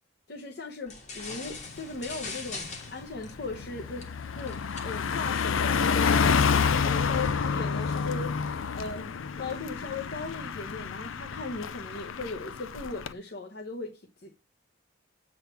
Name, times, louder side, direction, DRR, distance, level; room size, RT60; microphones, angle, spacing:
voice 1, 0.3-4.1 4.4-14.3, left 3 dB, 55° left, 0.9 m, -38 dB
sound 1, 0.9-6.1, left 3 dB, 35° left, 1.6 m, -43 dB
Car passing by, 1.5-1.8 2.2-13.1, left 6 dB, 90° left, 0.5 m, -29 dB
8.1 x 4.1 x 5.7 m
head